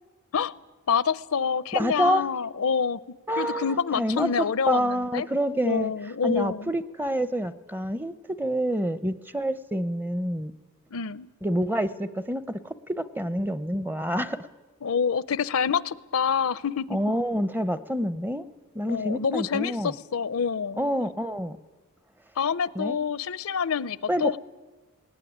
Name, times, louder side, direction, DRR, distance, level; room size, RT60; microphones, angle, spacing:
voice 1, 0.9-5.3 5.6-6.7 10.9-11.3 14.8-17.0 18.9-20.8 22.4-24.4, left 6 dB, 75° left, 19 dB, 0.6 m, -27 dB
voice 2, 1.7-2.3 3.3-5.9 6.2-10.5 11.4-14.4 16.9-18.4 18.7-19.9 20.8-21.6 22.8-23.0 24.1-24.4, equal, 10° right, 15 dB, 0.6 m, -27 dB
18.5 x 18.0 x 10.0 m, 1.3 s
head